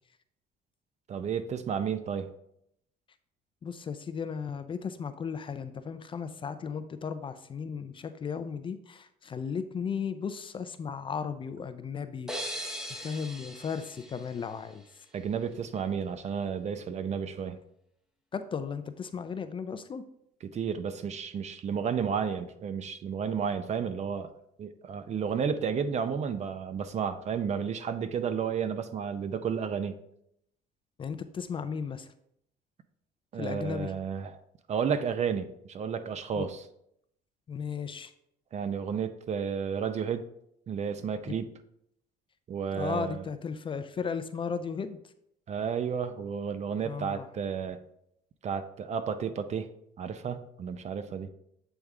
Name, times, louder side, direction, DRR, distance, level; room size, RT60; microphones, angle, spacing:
voice 1, 1.1-2.3 15.1-17.6 20.4-24.3 24.6-30.0 33.3-34.4 34.7-36.6 38.5-40.2 40.7-41.5 42.5-43.2 45.5-47.8 48.4-49.7 50.0-51.3, right 7 dB, 40° right, 10 dB, 0.5 m, -32 dB
voice 2, 3.6-14.8 18.3-20.0 31.0-32.1 33.3-33.9 36.4-36.5 37.5-38.1 41.3-41.4 42.7-45.0 46.8-47.3, left 6 dB, 30° left, 11 dB, 0.4 m, -35 dB
sound 1, 12.3-15.0, equal, 5° right, 0.7 m, -40 dB
8.0 x 3.4 x 3.6 m, 0.75 s
cardioid pair, 110°, 17 cm